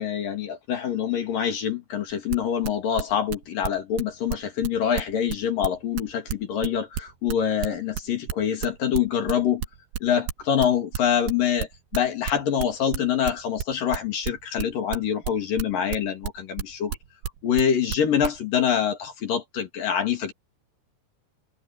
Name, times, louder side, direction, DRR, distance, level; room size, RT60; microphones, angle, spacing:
voice 1, 0.0-9.6 10.0-11.7 11.9-17.0 17.4-20.3, left 8 dB, 50° left, 3.6 m, -25 dB
sound 1, 2.1-18.4, right 9 dB, 65° right, 2.8 m, -30 dB
omnidirectional pair, 5.7 m